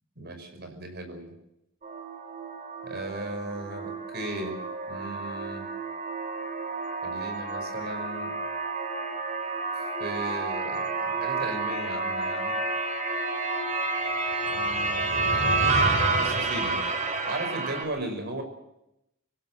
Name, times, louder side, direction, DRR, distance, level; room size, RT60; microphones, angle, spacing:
voice 1, 0.2-1.3 2.8-4.6 4.9-5.7 7.0-8.3 10.0-12.6 14.5-15.8 16.1-16.8 17.3-18.4, right 2 dB, 55° right, 6 dB, 5.6 m, -36 dB
sound 1, 1.8-17.8, right 3 dB, 40° right, 4.2 m, -29 dB
26.5 x 16.0 x 7.7 m, 0.85 s
head